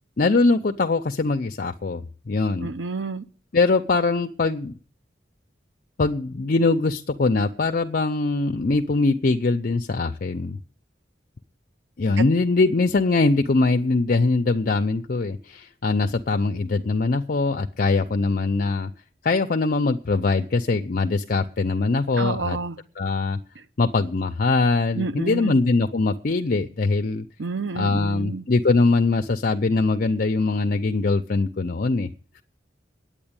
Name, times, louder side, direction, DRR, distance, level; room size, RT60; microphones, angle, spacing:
voice 1, 0.2-2.7 3.5-4.7 6.0-10.6 12.0-18.9 19.2-22.6 23.0-23.4 23.8-27.2 27.7-32.1, left 3 dB, 50° left, 0.6 m, -22 dB
voice 2, 2.6-3.2 12.2-12.3 22.2-22.8 25.0-25.6 27.4-28.4, right 4 dB, 85° right, 0.7 m, -29 dB
9.9 x 8.8 x 8.7 m
head